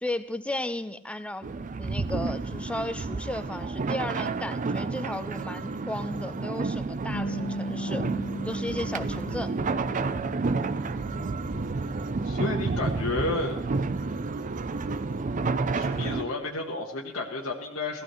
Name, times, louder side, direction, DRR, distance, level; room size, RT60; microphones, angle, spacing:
voice 1, 0.0-1.5 1.8-8.1 8.4-9.5, left 1 dB, 5° left, 11 dB, 0.6 m, -34 dB
sound 1, 1.4-16.2, right 3 dB, 40° right, 0.5 m, -30 dB
Bass guitar, 7.1-13.4, right 1 dB, 70° left, 1.5 m, -38 dB
voice 2, 12.2-13.6 15.7-18.0, left 2 dB, 85° left, -2 dB, 1.4 m, -31 dB
17.5 x 15.0 x 3.1 m, 0.82 s
head